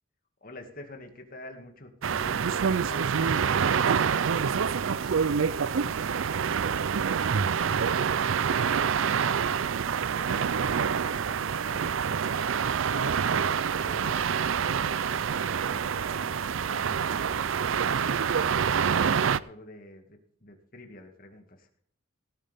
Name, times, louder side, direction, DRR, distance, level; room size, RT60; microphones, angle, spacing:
voice 1, 0.4-3.4 9.8-12.5 12.9-14.3 14.6-21.7, left 1 dB, 45° left, 5 dB, 2.2 m, -48 dB
sound 1, 2.0-19.4, right 7 dB, 70° right, 0.5 m, -26 dB
voice 2, 4.3-4.4, right 1 dB, 45° right, 2 dB, 5.3 m, -53 dB
17.5 x 10.5 x 3.6 m, 0.64 s
head